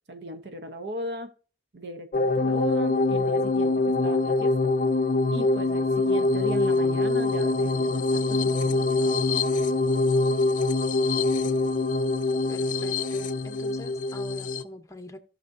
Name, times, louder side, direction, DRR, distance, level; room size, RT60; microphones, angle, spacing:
voice 1, 0.1-1.3 1.7-4.7 5.3-9.2, right 1 dB, 70° right, 0.9 m, -38 dB
sound 1, 2.1-14.6, left 2 dB, 50° left, 0.5 m, -24 dB
voice 2, 12.5-15.2, left 1 dB, 20° left, 0.8 m, -44 dB
16.5 x 5.9 x 2.6 m
head